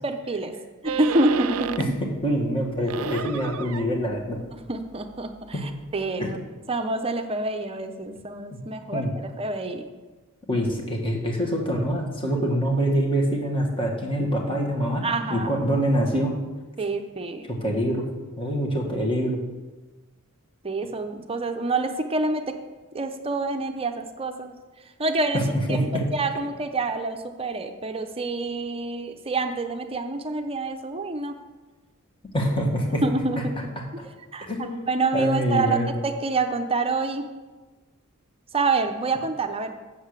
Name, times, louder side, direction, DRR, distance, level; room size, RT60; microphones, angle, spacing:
voice 1, 0.0-0.6 0.8-1.9 3.0-3.1 4.5-6.4 6.7-9.8 15.0-15.5 16.8-17.5 20.6-22.6 22.9-24.5 25.0-25.4 25.7-25.8 26.1-31.3 33.0-33.5 33.9-34.0 34.3-35.8 36.0-37.3 38.5-39.7, right 3 dB, 25° right, 6 dB, 0.7 m, -27 dB
sound 1, 0.9-2.1 2.5-6.1, right 7 dB, 70° right, 0.4 m, -34 dB
voice 2, 2.2-4.4 5.5-5.7 6.2-6.3 8.5-8.6 8.9-9.1 10.5-16.4 17.5-18.0 18.4-19.4 25.3-26.1 32.3-33.0 33.4-33.5 33.7-33.8 34.5-34.8 35.1-35.9, equal, 25° left, 0 dB, 1.7 m, -25 dB
7.8 x 7.4 x 6.6 m, 1.3 s
head